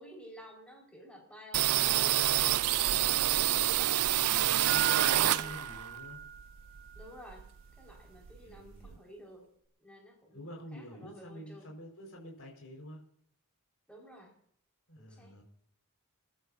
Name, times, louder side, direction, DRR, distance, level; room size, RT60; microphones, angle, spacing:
voice 1, 0.0-4.0 5.0-5.6 6.9-7.5 7.8-9.5 9.8-11.7 13.9-14.3 15.0-15.3, right 1 dB, 5° left, -2 dB, 5.2 m, -51 dB
sound 1, 1.5-5.9 6.2-7.6 7.9-8.0 8.2-9.0, right 13 dB, 90° right, 0.5 m, -28 dB
voice 2, 4.6-6.2 8.3-9.0 10.3-13.0 14.9-15.4, equal, 75° left, -1 dB, 5.2 m, -47 dB
sound 2, 4.7-7.2 7.5-7.6 8.0-8.1, right 8 dB, 60° right, 1.7 m, -39 dB
28.5 x 12.5 x 2.8 m, 0.64 s
head